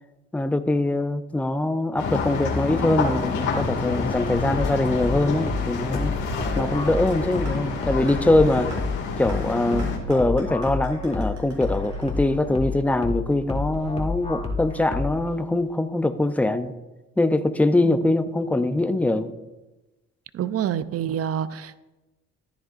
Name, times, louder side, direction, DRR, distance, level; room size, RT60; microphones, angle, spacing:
voice 1, 0.3-6.1 6.6-8.7 9.2-16.7 17.2-19.3, left 2 dB, 5° left, 10 dB, 0.6 m, -23 dB
sound 1, 2.0-10.0, left 4 dB, 85° left, 2.2 m, -28 dB
sound 2, 4.3-15.3, left 4 dB, 20° left, 1.7 m, -30 dB
sound 3, 7.5-7.6 8.1-8.2 8.7-8.8 9.3-9.4 9.8-12.7, right 3 dB, 90° right, 3.6 m, -44 dB
voice 2, 9.7-10.0 17.8-17.9 18.3-18.4 20.3-21.8, right 9 dB, 50° right, 14 dB, 0.6 m, -28 dB
14.0 x 10.0 x 2.5 m, 1.1 s
cardioid pair, 90°, 30 cm